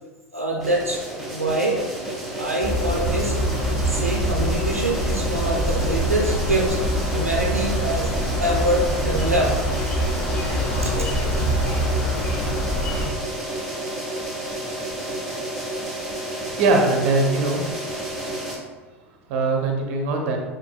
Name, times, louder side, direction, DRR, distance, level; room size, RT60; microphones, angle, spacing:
voice 1, 0.3-1.0 1.3-1.8 2.4-3.4 3.8-6.8 7.1-9.9 10.5-12.2, right 1 dB, 85° right, -1 dB, 0.5 m, -25 dB
sound 1, 0.6-18.6, right 1 dB, ahead, 1.3 m, -31 dB
sound 2, 2.6-13.1, equal, 20° left, 0.8 m, -24 dB
voice 2, 16.6-17.6 19.3-20.4, right 3 dB, 50° right, 2 dB, 0.7 m, -21 dB
6.9 x 2.5 x 2.2 m, 1.2 s
figure-of-eight pair, 80°, 7 cm